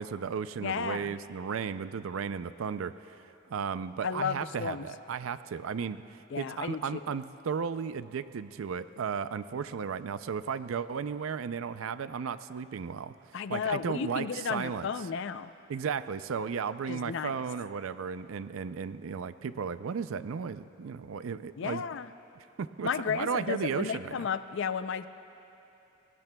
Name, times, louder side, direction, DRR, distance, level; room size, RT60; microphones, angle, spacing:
voice 1, 0.0-3.2 3.5-13.1 13.5-14.9 15.7-21.8 22.4-24.3, right 6 dB, 90° right, 13 dB, 0.4 m, -35 dB
voice 2, 0.6-1.2 4.0-4.9 6.3-7.0 13.3-15.5 16.9-17.4 21.6-22.1 22.8-25.1, left 6 dB, 65° left, 12 dB, 0.4 m, -33 dB
28.5 x 20.0 x 2.3 m, 3.0 s
head